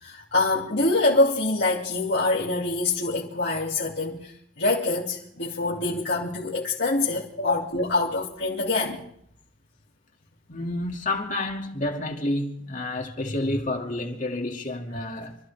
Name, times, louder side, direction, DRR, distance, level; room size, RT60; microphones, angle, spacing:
voice 1, 0.0-4.3 4.6-9.0, left 2 dB, 65° left, 2.7 m, -25 dB
voice 2, 10.5-15.4, left 2 dB, 45° left, 2.5 m, -29 dB
27.0 x 14.5 x 3.6 m
head